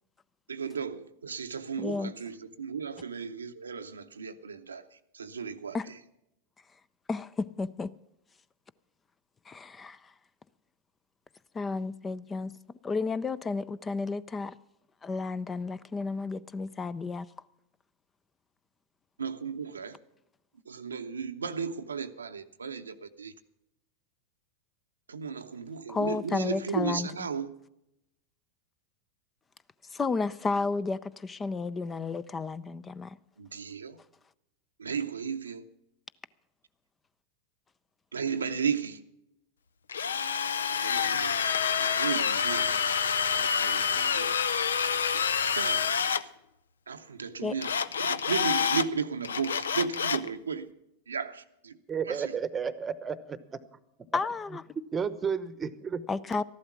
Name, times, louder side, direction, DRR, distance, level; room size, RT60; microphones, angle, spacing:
voice 1, 0.5-4.8 5.1-5.8 19.2-20.0 20.7-23.3 25.1-27.5 33.4-34.0 34.8-35.6 38.1-39.0 40.7-41.4 41.6-42.9 43.4-44.7 44.9-45.0 45.5-45.8 46.9-47.7 48.1-50.7 51.1-51.7 52.1-52.3, right 6 dB, 85° right, 0.7 m, -35 dB
voice 2, 1.8-2.1 5.7-5.9 7.1-7.9 9.5-10.1 11.5-12.6 12.8-14.5 15.0-17.3 25.9-27.3 29.9-33.2 47.4-47.6 54.1-54.6 56.1-56.4, left 4 dB, 20° left, 0.5 m, -32 dB
Drill, 39.9-46.2 47.6-48.9 49.2-50.3, left 7 dB, 80° left, 0.5 m, -27 dB
voice 3, 51.9-53.6 54.9-56.0, right 6 dB, 25° right, 0.9 m, -32 dB
13.5 x 11.5 x 6.0 m
hypercardioid pair, 95°, 0 cm